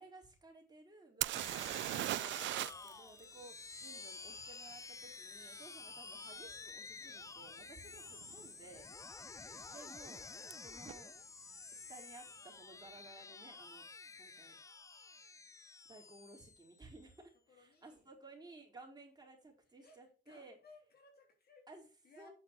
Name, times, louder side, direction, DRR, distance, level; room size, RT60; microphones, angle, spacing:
voice 1, 0.0-8.9 9.7-10.3 10.6-11.1 11.7-14.6 15.9-20.6 21.7-21.9 22.2-22.3, right 2 dB, 20° right, 0 dB, 4.2 m, -57 dB
sound 1, 1.2-2.9 3.2-3.3 6.7-6.8 7.4-7.6 7.9-8.5 10.5-10.6 10.9-11.0, right 15 dB, 70° right, 0.4 m, -38 dB
Heterodyne radio effect, 1.3-17.1, left 4 dB, 15° left, 0.3 m, -51 dB
voice 2, 17.5-18.1 19.7-20.0 20.3-21.7 22.0-22.3, left 3 dB, 50° left, 2 dB, 3.7 m, -63 dB
8.7 x 8.3 x 4.6 m, 0.38 s
cardioid pair, 90°, 20 cm